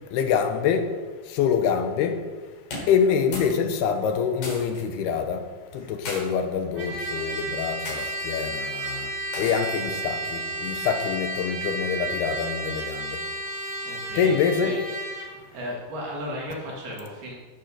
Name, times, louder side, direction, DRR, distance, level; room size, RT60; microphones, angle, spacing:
voice 1, 0.1-0.9 1.3-2.2 2.9-5.4 5.7-9.1 9.4-13.2 14.2-14.8, left 7 dB, 80° left, 6 dB, 3.0 m, -25 dB
sound 1, 2.6-3.6 3.9-4.8 5.7-6.2 7.0-7.3 7.8-8.1 9.3-9.8, left 2 dB, 55° left, 5.0 m, -36 dB
Trumpet, 6.8-15.3, right 2 dB, 30° right, 4.2 m, -32 dB
voice 2, 13.8-14.3 14.6-14.8 15.5-17.3, equal, 70° right, -3 dB, 4.5 m, -35 dB
15.5 x 6.9 x 6.7 m, 1.4 s
omnidirectional pair, 4.7 m